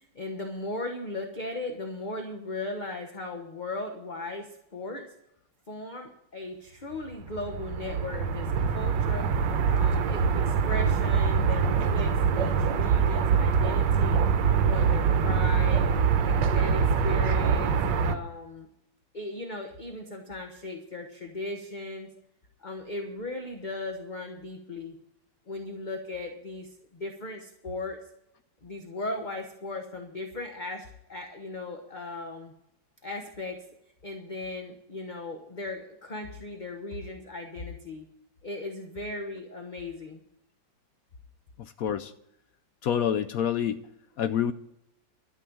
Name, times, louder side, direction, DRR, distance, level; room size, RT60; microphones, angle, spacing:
voice 1, 0.0-5.0 5.7-9.3 9.7-14.2 14.6-15.9 16.2-18.7 19.1-22.1 22.6-25.0 25.5-28.0 28.6-32.5 33.0-33.6 34.0-38.1 38.4-40.2, left 2 dB, 30° left, 4 dB, 1.0 m, -37 dB
sound 1, 7.2-18.2, right 6 dB, 70° right, 1.5 m, -24 dB
voice 2, 41.8-42.1 42.8-43.8 44.2-44.5, left 9 dB, 80° left, 11 dB, 0.7 m, -27 dB
12.5 x 6.2 x 8.6 m, 0.80 s
omnidirectional pair, 2.1 m